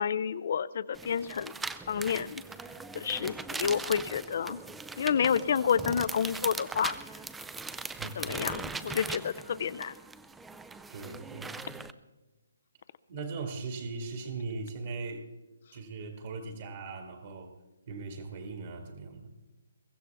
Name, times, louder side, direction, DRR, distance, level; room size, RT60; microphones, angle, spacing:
voice 1, 0.0-1.5 1.9-2.4 2.9-4.6 5.0-7.0 8.2-9.9, left 7 dB, 50° left, 16 dB, 0.5 m, -29 dB
sound 1, 0.9-11.9, right 4 dB, 5° right, 0.4 m, -40 dB
voice 2, 8.0-8.3 10.9-11.8 13.1-15.3 15.7-17.5 17.9-19.3, right 4 dB, 45° right, 4 dB, 1.9 m, -39 dB
22.5 x 15.0 x 3.5 m, 1.1 s
hypercardioid pair, 155°, 0 cm